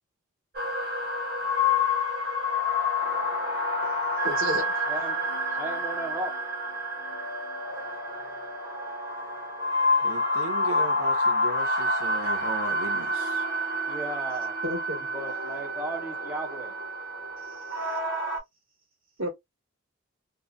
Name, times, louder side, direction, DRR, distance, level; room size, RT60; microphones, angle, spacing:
sound 1, 0.5-18.4, left 2 dB, 50° right, 0.8 m, -28 dB
voice 1, 4.2-4.8 14.6-15.1 17.5-18.0 19.2-19.3, equal, 70° right, 1.1 m, -33 dB
voice 2, 4.9-6.3 13.9-14.6 15.1-16.7, right 1 dB, 10° right, 0.4 m, -36 dB
voice 3, 10.0-13.4, right 4 dB, 85° right, 0.4 m, -37 dB
2.6 x 2.1 x 2.3 m
head